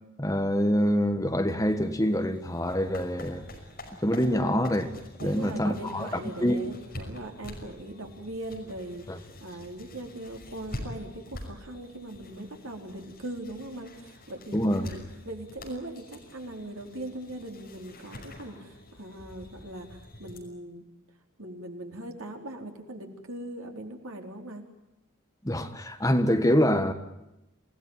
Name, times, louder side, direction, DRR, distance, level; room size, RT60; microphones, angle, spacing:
voice 1, 0.2-3.4 4.0-4.9 5.2-6.1 6.4-6.6 9.1-9.2 14.5-14.9 25.4-26.9, equal, 15° left, 7 dB, 1.6 m, -25 dB
sound 1, 1.6-20.4, left 1 dB, 45° left, 5.8 m, -46 dB
voice 2, 4.3-4.7 5.2-20.8 21.4-24.6, right 1 dB, 80° right, 2 dB, 4.4 m, -40 dB
28.5 x 18.0 x 9.2 m, 0.90 s
head